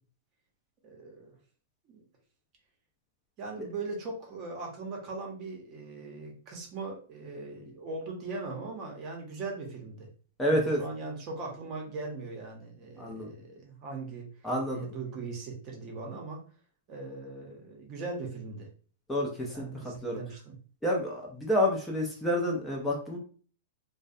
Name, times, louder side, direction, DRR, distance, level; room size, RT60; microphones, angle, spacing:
voice 1, 0.8-1.4 1.9-2.0 3.4-10.1 10.4-14.3 14.7-16.4 16.9-18.7 19.5-20.6, right 3 dB, 35° right, 1 dB, 0.8 m, -40 dB
voice 2, 10.4-10.8 13.0-13.3 14.4-14.9 19.1-20.2 20.8-23.2, left 1 dB, 10° left, -2 dB, 0.5 m, -29 dB
2.2 x 2.1 x 2.6 m, 0.42 s
hypercardioid pair, 130°, 0 cm